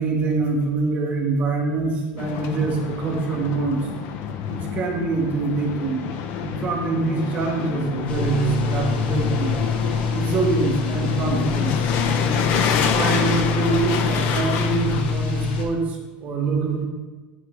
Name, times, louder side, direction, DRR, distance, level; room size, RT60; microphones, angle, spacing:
voice 1, 0.0-3.9 4.5-6.1 6.4-9.5 10.1-11.9 12.9-16.9, right 3 dB, 25° right, 1 dB, 1.0 m, -24 dB
sound 1, 2.2-15.1, left 7 dB, 40° left, 0.5 m, -27 dB
sound 2, 8.1-15.7, left 5 dB, 90° left, 1.2 m, -25 dB
11.0 x 4.7 x 2.4 m, 1.3 s
supercardioid pair, 170°, 5 cm